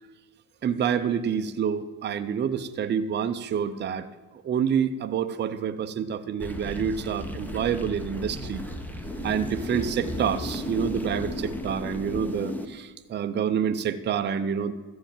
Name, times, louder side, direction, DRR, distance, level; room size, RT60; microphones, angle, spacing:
voice 1, 0.6-4.1 4.4-8.6 9.2-14.7, right 7 dB, 25° right, 8 dB, 0.5 m, -27 dB
sound 1, 6.4-12.7, left 1 dB, 5° left, 0.8 m, -34 dB
13.5 x 4.7 x 9.0 m, 1.3 s
cardioid pair, 130°, 41 cm